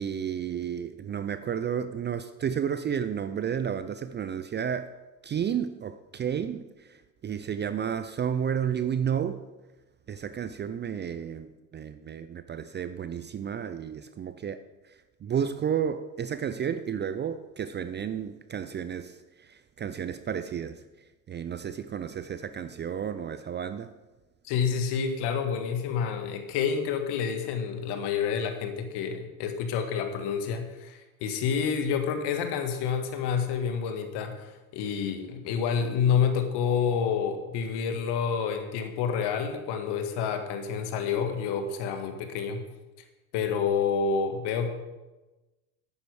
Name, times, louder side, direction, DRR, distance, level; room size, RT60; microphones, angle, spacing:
voice 1, 0.0-4.9 5.2-9.5 10.1-20.8 21.3-23.9, right 8 dB, 25° right, 0.5 m, -32 dB
voice 2, 24.4-42.6 43.3-44.7, left 6 dB, 60° left, 1.7 m, -28 dB
10.5 x 9.5 x 4.8 m
hypercardioid pair, 75°, 46 cm